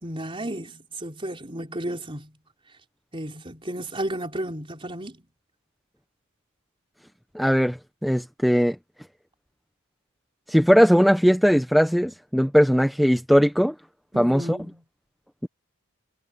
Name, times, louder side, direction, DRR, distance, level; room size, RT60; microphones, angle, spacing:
voice 1, 0.0-2.3 3.1-5.2 14.1-14.8, right 1 dB, 25° right, 4.0 m, -33 dB
voice 2, 7.3-8.8 10.5-13.7 14.2-14.6, equal, ahead, 1.0 m, -19 dB
head